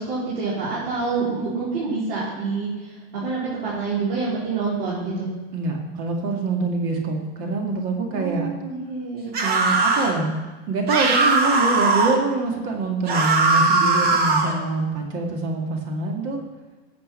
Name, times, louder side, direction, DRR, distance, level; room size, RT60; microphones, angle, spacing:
voice 1, 0.0-5.3 8.1-9.3, right 4 dB, 75° right, -9 dB, 4.5 m, -27 dB
voice 2, 5.5-8.5 9.4-10.3 10.7-16.4, right 3 dB, 45° right, 1 dB, 2.2 m, -25 dB
sound 1, 9.3-10.1 10.9-12.2 13.1-14.6, right 3 dB, 30° right, 1.6 m, -19 dB
14.5 x 7.7 x 4.4 m, 1.2 s
supercardioid pair, 145°, 31 cm